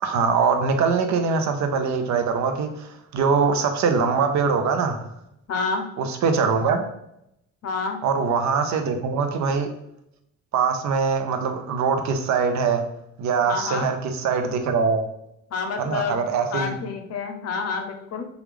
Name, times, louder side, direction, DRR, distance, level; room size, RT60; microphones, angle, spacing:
voice 1, 0.0-5.0 6.0-6.8 8.0-9.7 10.5-12.8 13.2-15.0 15.8-16.8, right 5 dB, 70° right, 6 dB, 0.6 m, -22 dB
voice 2, 5.5-5.9 7.6-8.0 13.5-13.9 15.5-16.2 16.5-18.2, left 4 dB, 55° left, 5 dB, 0.6 m, -28 dB
3.1 x 2.3 x 3.4 m, 0.78 s
cardioid pair, 90°, 30 cm